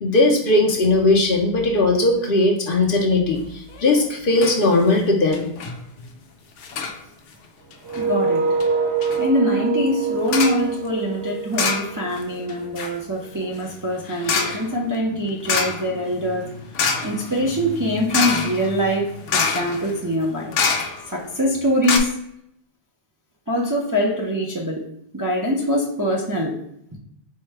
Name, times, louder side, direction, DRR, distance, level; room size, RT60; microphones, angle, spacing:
voice 1, 0.0-5.5, left 2 dB, 55° left, 1 dB, 0.8 m, -18 dB
sound 1, 3.7-4.1 4.4-4.6 4.9-5.0 5.3-5.7 6.6-7.0 7.7-8.1 8.6-8.7 9.0-9.2 10.3-10.7 11.5-12.2 12.5-21.2 21.6-21.7 21.8-22.0, left 5 dB, 85° left, 0.9 m, -26 dB
sound 2, 7.8-12.7, right 5 dB, 60° right, 1.0 m, -25 dB
voice 2, 8.0-8.5 9.2-16.5 17.0-20.5 21.1-22.2 23.5-24.8 25.1-26.6, equal, 25° right, -3 dB, 0.4 m, -23 dB
4.5 x 2.2 x 4.5 m, 0.73 s
omnidirectional pair, 1.2 m